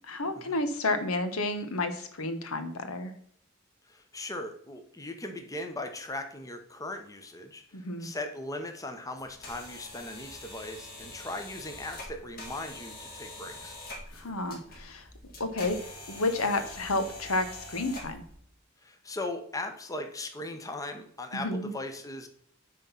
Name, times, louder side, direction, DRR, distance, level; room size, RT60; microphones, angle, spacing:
voice 1, 0.1-3.1 7.7-8.1 14.1-15.0 15.4-15.8 16.1-18.2 21.3-21.7, left 2 dB, 85° left, 8 dB, 1.1 m, -31 dB
voice 2, 3.9-13.8 18.8-22.3, left 2 dB, 15° left, 5 dB, 0.9 m, -39 dB
sound 1, 9.2-18.3, left 2 dB, 45° left, 2.6 m, -45 dB
9.5 x 3.8 x 5.6 m, 0.65 s
head